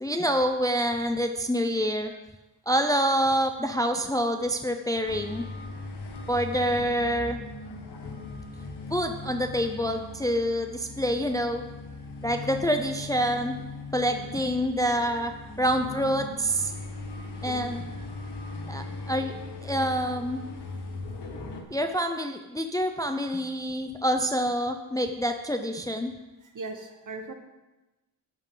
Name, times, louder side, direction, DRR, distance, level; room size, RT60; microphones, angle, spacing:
voice 1, 0.0-2.1 2.7-5.4 6.3-7.4 8.9-11.6 12.2-13.6 13.9-16.7 17.4-17.8 18.7-20.4 21.7-26.1, equal, 10° left, 5 dB, 0.4 m, -27 dB
sound 1, 5.0-21.6, left 3 dB, 80° left, 1.7 m, -39 dB
voice 2, 17.4-18.1 26.4-27.3, right 3 dB, 50° right, 6 dB, 1.2 m, -40 dB
13.5 x 9.6 x 3.8 m, 1.1 s
wide cardioid pair, 170°, 40 cm